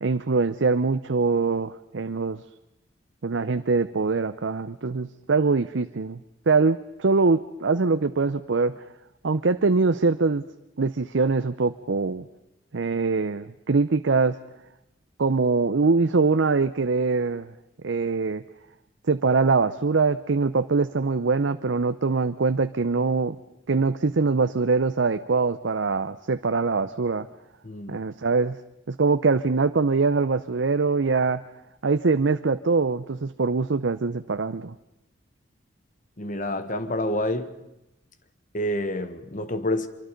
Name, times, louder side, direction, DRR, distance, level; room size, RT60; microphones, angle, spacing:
voice 1, 0.0-2.4 3.2-6.2 6.5-8.8 9.2-10.4 10.8-12.3 12.7-14.4 15.2-17.5 17.8-18.4 19.1-23.4 23.7-27.3 27.9-28.6 28.9-31.4 31.8-34.8, right 4 dB, 80° right, 0.7 m, -23 dB
voice 2, 27.6-28.0 36.2-37.5 38.5-39.9, left 1 dB, 45° left, 1.5 m, -28 dB
25.0 x 24.0 x 5.3 m
head